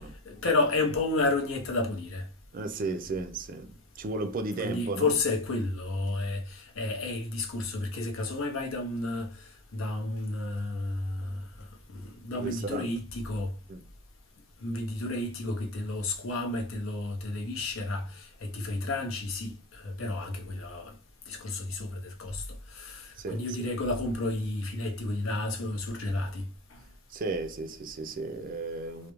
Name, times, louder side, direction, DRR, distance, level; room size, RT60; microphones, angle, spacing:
voice 1, 0.3-2.2 4.6-11.7 11.9-13.5 14.6-20.9 21.3-22.4 22.7-26.4, left 2 dB, 80° left, 0.6 m, -31 dB
voice 2, 2.5-5.1 12.4-12.9 13.7-13.8 23.2-23.4 27.1-29.1, right 3 dB, 45° right, 0.4 m, -34 dB
2.3 x 2.1 x 3.0 m
head